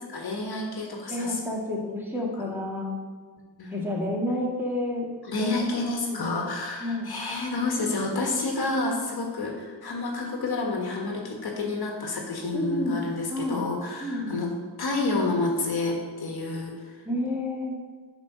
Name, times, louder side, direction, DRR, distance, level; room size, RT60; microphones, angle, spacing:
voice 1, 0.1-1.4 2.4-2.5 3.6-3.8 5.2-14.5 14.8-16.7, left 2 dB, 55° left, 1 dB, 1.7 m, -29 dB
voice 2, 1.0-3.0 3.7-5.1 5.4-5.6 6.1-6.4 6.8-7.1 12.5-13.0 13.3-13.7 14.0-14.5 17.0-17.8, left 1 dB, 5° right, -3 dB, 2.2 m, -30 dB
6.3 x 6.1 x 6.3 m, 1.4 s
cardioid pair, 75°, 45 cm